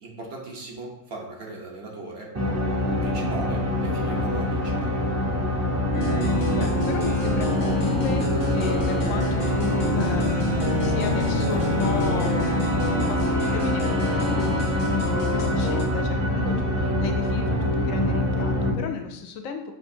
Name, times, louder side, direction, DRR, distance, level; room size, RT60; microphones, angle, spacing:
voice 1, 0.0-2.4 3.0-5.0, right 2 dB, 55° right, -1 dB, 1.0 m, -39 dB
sound 1, 2.3-18.7, left 1 dB, 20° right, 0.4 m, -25 dB
sound 2, 5.9-15.9, left 1 dB, 40° left, 0.4 m, -28 dB
sound 3, 6.2-13.3, left 2 dB, 60° left, 0.8 m, -39 dB
voice 2, 6.6-8.2 8.5-12.8 13.1-19.7, left 5 dB, 85° left, 5 dB, 1.0 m, -34 dB
6.6 x 2.5 x 2.6 m, 0.80 s
omnidirectional pair, 1.4 m